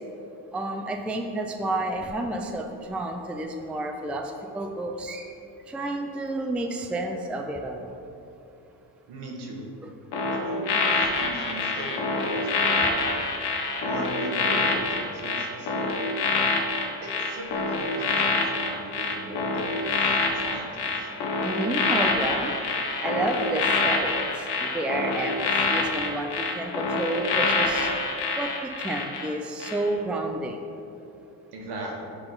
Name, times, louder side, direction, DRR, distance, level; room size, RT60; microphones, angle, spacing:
voice 1, 0.5-5.3 5.7-7.9 9.8-9.9 21.4-22.5 23.0-25.4 25.7-27.9 28.4-30.6, right 2 dB, 5° right, 4 dB, 0.3 m, -30 dB
voice 2, 9.1-9.6 10.3-13.1 13.8-16.0 17.0-21.1 31.5-32.1, right 1 dB, 75° right, -1 dB, 1.3 m, -38 dB
sound 1, 10.1-29.3 29.6-29.9, left 3 dB, 75° left, 1.0 m, -26 dB
6.8 x 3.8 x 3.8 m, 2.7 s
cardioid pair, 80°, 40 cm